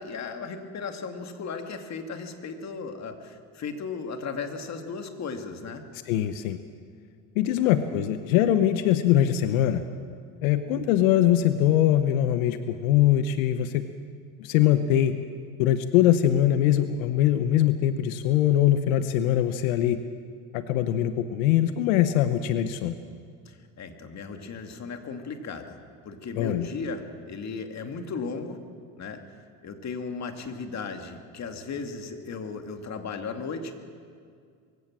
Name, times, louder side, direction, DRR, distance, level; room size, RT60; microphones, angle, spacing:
voice 1, 0.0-5.8 7.5-7.8 8.4-8.5 23.5-25.8 26.1-28.6 29.0-29.2 29.6-33.7, left 4 dB, 40° left, 5 dB, 2.4 m, -36 dB
voice 2, 6.1-6.6 7.4-9.8 10.4-13.8 14.4-15.1 15.6-20.0 20.5-22.9 26.4-26.7, left 11 dB, 90° left, 10 dB, 1.0 m, -22 dB
23.0 x 16.0 x 7.5 m, 2.1 s
supercardioid pair, 100°, 40 cm